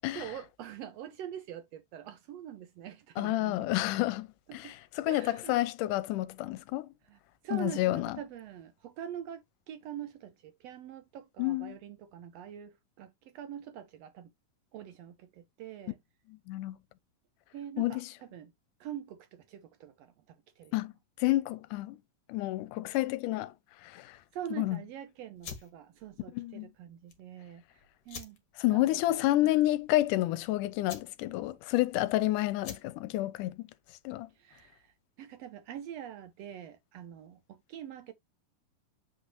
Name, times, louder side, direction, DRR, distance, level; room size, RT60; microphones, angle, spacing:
voice 1, 0.1-3.8 4.5-4.7 5.1-5.6 7.1-7.2 7.4-14.3 14.7-16.0 17.5-18.5 18.8-20.7 24.3-27.6 28.1-28.4 28.7-29.6 34.3-38.1, right 10 dB, 85° right, 1.4 m, -44 dB
voice 2, 3.2-6.9 7.5-8.2 11.4-11.8 16.3-16.8 17.8-18.1 20.7-20.9 21.2-22.0 22.3-23.5 23.8-24.2 24.5-24.8 26.3-26.7 28.6-33.7 34.0-34.3, left 16 dB, 80° left, 2.1 m, -30 dB
sound 1, 25.3-34.9, left 6 dB, 45° left, 1.7 m, -50 dB
8.1 x 5.4 x 3.0 m
omnidirectional pair, 3.8 m